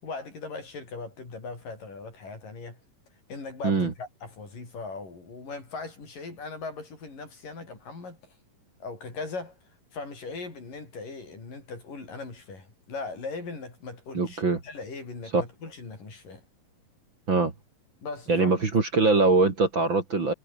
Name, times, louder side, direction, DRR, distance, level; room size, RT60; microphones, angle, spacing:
voice 1, 0.0-2.8 3.3-8.4 8.8-9.6 9.9-16.4 18.0-18.5, left 4 dB, 70° left, 9.1 m, -39 dB
voice 2, 14.1-14.6 15.3-15.4 17.3-17.5 18.3-20.3, right 3 dB, 35° right, 3.3 m, -22 dB
omnidirectional pair, 4.0 m